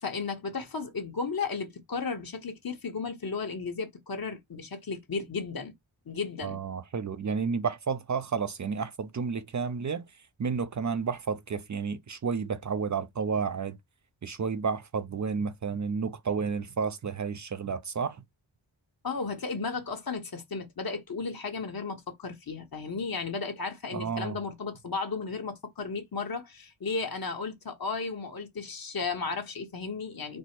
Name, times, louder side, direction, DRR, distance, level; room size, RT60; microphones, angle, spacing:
voice 1, 0.0-5.7 6.1-6.6 19.0-30.4, left 4 dB, 50° left, 1.1 m, -34 dB
voice 2, 6.4-10.1 10.4-13.8 14.2-18.2 23.9-24.4, right 5 dB, 40° right, 0.5 m, -31 dB
4.4 x 2.1 x 4.3 m
wide cardioid pair, 120°, 47 cm